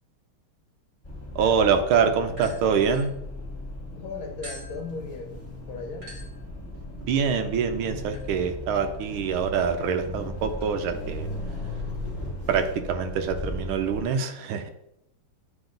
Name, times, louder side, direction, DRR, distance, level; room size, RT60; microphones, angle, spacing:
sound 1, 1.0-14.0, left 1 dB, 15° left, 1.2 m, -37 dB
voice 1, 1.3-3.1 7.0-11.3 12.5-14.7, right 6 dB, 80° right, 7 dB, 1.5 m, -25 dB
sound 2, 2.4-3.8 4.4-12.7, equal, 40° right, 1.8 m, -48 dB
voice 2, 4.0-6.2, left 4 dB, 70° left, 4 dB, 1.8 m, -37 dB
8.9 x 3.9 x 3.8 m, 0.79 s
omnidirectional pair, 2.4 m